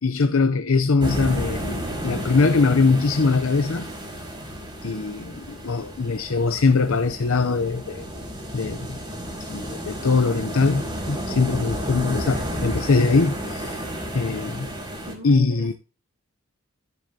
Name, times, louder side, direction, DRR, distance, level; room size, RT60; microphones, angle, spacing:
voice 1, 0.0-3.9 4.8-8.1 8.5-9.0 9.4-13.9 14.1-14.7 15.2-15.7, left 4 dB, 75° left, 0.7 m, -22 dB
sound 1, 1.0-15.1, equal, 25° right, 4.7 m, -32 dB
voice 2, 15.0-15.7, left 2 dB, 65° right, 6.3 m, -34 dB
12.5 x 11.0 x 2.8 m
head